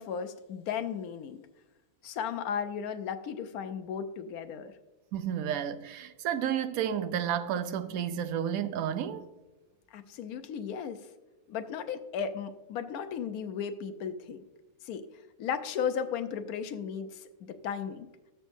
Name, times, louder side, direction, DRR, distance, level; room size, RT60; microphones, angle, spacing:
voice 1, 0.0-1.4 2.0-4.7 9.9-11.0 11.5-14.4 14.8-15.1 15.4-18.1, left 7 dB, 70° left, 1.2 m, -35 dB
voice 2, 5.1-9.2, right 9 dB, 70° right, 1.1 m, -31 dB
17.0 x 6.8 x 2.7 m
omnidirectional pair, 1.7 m